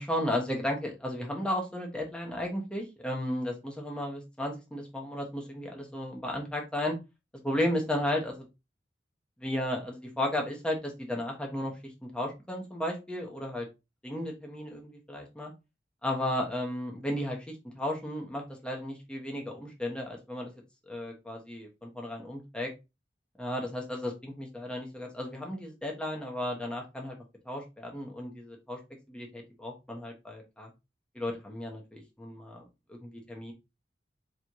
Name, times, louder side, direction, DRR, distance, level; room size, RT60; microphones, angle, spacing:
voice 1, 0.0-7.0 7.4-8.5 9.4-13.7 14.0-15.5 16.0-20.5 20.9-22.7 23.4-27.2 27.4-28.8 29.1-30.7 31.1-33.5, left 1 dB, 5° left, 0 dB, 1.2 m, -34 dB
4.7 x 3.3 x 2.7 m, 0.25 s
head